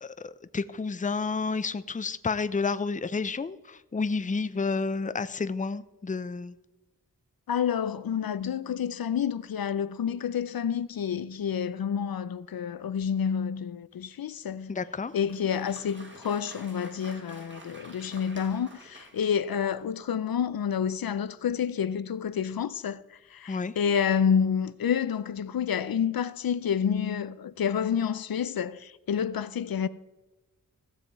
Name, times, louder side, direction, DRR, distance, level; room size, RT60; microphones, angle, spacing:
voice 1, 0.0-6.6 14.7-15.1 23.5-23.7, left 4 dB, 25° left, 0.5 m, -30 dB
voice 2, 7.5-14.8 15.1-29.9, left 7 dB, 80° left, 0.5 m, -29 dB
Applause, 15.0-19.9, right 1 dB, 35° right, 1.9 m, -50 dB
15.5 x 7.4 x 4.5 m
wide cardioid pair, 65°, 35 cm